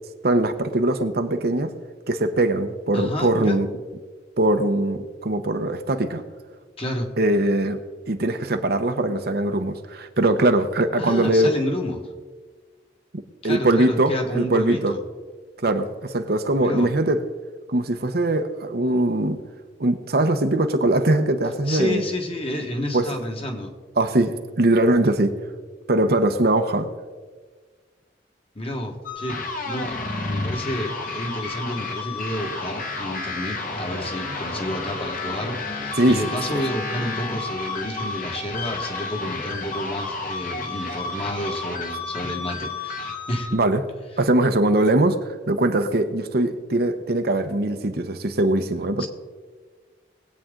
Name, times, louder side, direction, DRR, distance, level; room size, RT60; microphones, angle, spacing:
voice 1, 0.2-1.7 2.1-3.7 4.4-6.2 7.2-7.8 8.1-11.5 13.4-14.9 15.6-17.2 17.7-19.4 19.8-22.0 22.9-23.1 24.0-25.3 25.9-26.9 36.0-36.2 36.5-36.6 43.5-43.8 44.2-49.1, right 1 dB, 60° right, 7 dB, 0.9 m, -21 dB
voice 2, 2.9-3.6 6.8-7.1 11.0-12.0 13.4-15.0 16.6-16.9 21.7-23.7 28.5-30.0 30.3-43.6 49.0-49.1, left 1 dB, 30° left, 2 dB, 1.6 m, -30 dB
sound 1, 29.0-43.5, left 3 dB, 50° left, 1.5 m, -31 dB
21.0 x 8.5 x 3.8 m, 1.4 s
head